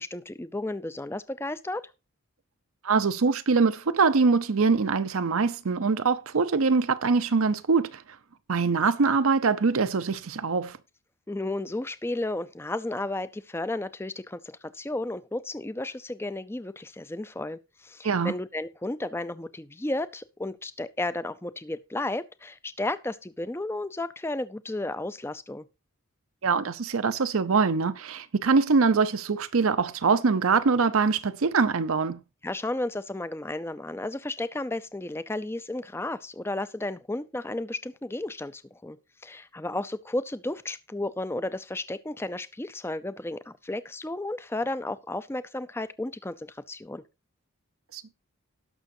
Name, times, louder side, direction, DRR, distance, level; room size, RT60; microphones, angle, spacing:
voice 1, 0.0-1.8 11.3-25.7 32.4-39.0 39.2-47.0, left 2 dB, 10° left, 0.4 m, -33 dB
voice 2, 2.8-8.0 8.5-10.8 18.0-18.3 26.4-32.2 47.9-48.0, right 4 dB, 70° right, 0.6 m, -23 dB
18.0 x 6.2 x 2.7 m
head